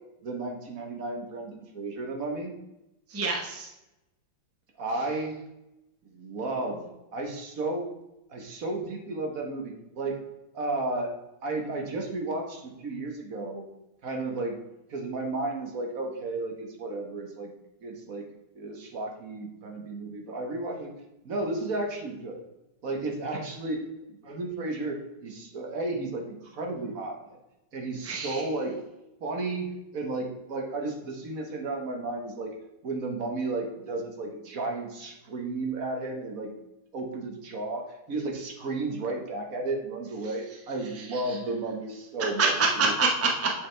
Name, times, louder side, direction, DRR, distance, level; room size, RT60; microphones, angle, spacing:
voice 1, 0.2-2.5 4.8-5.4 6.0-7.9 8.3-10.2 10.5-11.1 11.4-13.6 14.0-14.6 14.9-17.5 17.8-18.2 18.5-20.9 21.2-22.4 22.8-23.8 24.1-27.4 27.7-28.8 29.2-32.5 32.8-36.5 36.9-42.9, right 2 dB, 45° right, 2 dB, 1.4 m, -33 dB
voice 2, 3.1-3.7 28.0-28.4 40.9-41.4 42.4-43.5, right 3 dB, 15° right, 0 dB, 0.5 m, -26 dB
8.0 x 7.2 x 3.3 m, 0.93 s
omnidirectional pair, 2.3 m